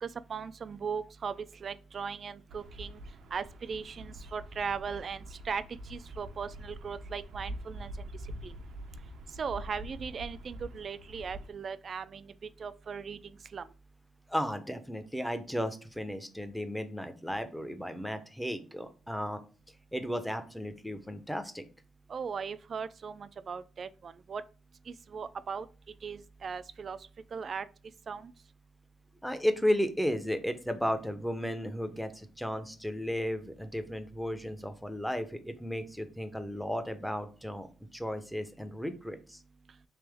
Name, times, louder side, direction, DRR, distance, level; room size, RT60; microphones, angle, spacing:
voice 1, 0.0-3.0 3.3-8.1 8.4-8.6 9.4-12.3 12.6-13.2 13.5-13.7 22.1-24.4 24.9-25.7 26.0-27.0 27.3-27.7 28.1-28.3, right 6 dB, 45° right, 0.3 m, -38 dB
Bird vocalization bird call bird song, 2.5-11.5, right 1 dB, 75° right, 0.7 m, -45 dB
voice 2, 14.3-19.4 19.9-21.6 29.2-37.7 37.9-39.4, equal, ahead, 0.6 m, -34 dB
3.4 x 2.9 x 3.4 m
cardioid pair, 90°, 0 cm